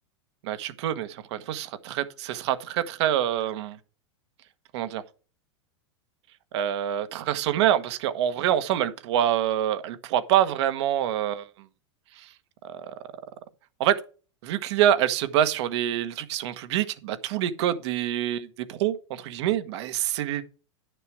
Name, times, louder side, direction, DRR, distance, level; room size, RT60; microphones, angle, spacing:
voice 1, 0.4-3.8 4.7-5.0 6.5-11.5 12.2-12.3 12.6-12.9 13.8-14.0 14.4-20.4, right 11 dB, 65° right, 1.2 m, -26 dB
10.5 x 6.8 x 4.6 m
hypercardioid pair, 110°, 15 cm